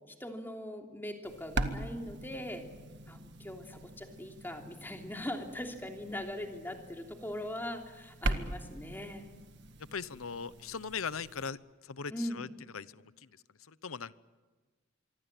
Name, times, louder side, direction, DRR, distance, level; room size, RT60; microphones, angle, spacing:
voice 1, 0.1-2.6 3.1-9.2 12.1-12.5, left 1 dB, 10° left, 3 dB, 3.2 m, -41 dB
sound 1, 1.2-11.5, right 2 dB, 55° right, 1.8 m, -41 dB
voice 2, 9.9-12.5 12.7-13.3 13.7-14.1, left 6 dB, 90° left, 17 dB, 0.9 m, -40 dB
25.5 x 24.0 x 9.1 m, 1.3 s
head